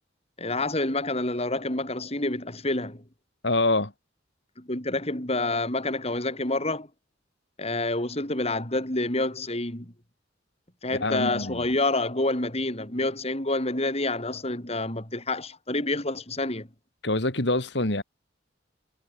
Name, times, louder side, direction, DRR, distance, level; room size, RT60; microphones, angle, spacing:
voice 1, 0.4-3.0 4.6-6.9 7.6-9.9 10.8-16.7, left 2 dB, 35° left, 4.5 m, -28 dB
voice 2, 3.4-3.9 10.9-11.6 17.0-18.0, left 2 dB, 65° left, 3.0 m, -25 dB
head